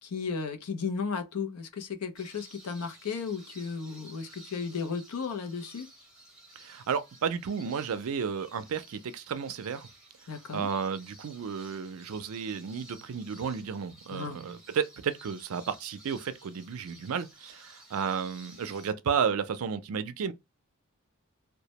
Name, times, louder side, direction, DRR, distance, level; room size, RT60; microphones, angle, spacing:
voice 1, 0.0-5.9 10.3-10.7 14.1-14.4, left 5 dB, 85° left, 0.5 m, -34 dB
sound 1, 2.2-18.9, right 1 dB, 5° right, 0.8 m, -54 dB
voice 2, 6.6-9.9 10.5-20.3, right 6 dB, 65° right, 0.4 m, -32 dB
2.1 x 2.0 x 2.8 m
head